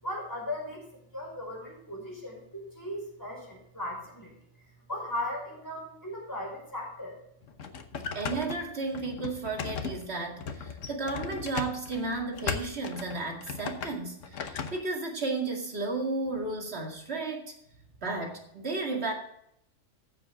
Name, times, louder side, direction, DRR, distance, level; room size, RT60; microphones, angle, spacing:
voice 1, 0.0-0.8 1.1-4.3 4.9-7.2, left 1 dB, 15° left, -3 dB, 5.3 m, -37 dB
sound 1, 7.4-14.8, left 6 dB, 65° left, 1.3 m, -37 dB
voice 2, 8.1-17.5 18.0-19.1, right 3 dB, 50° right, 1 dB, 2.4 m, -33 dB
14.5 x 7.5 x 3.7 m, 0.76 s
omnidirectional pair, 1.4 m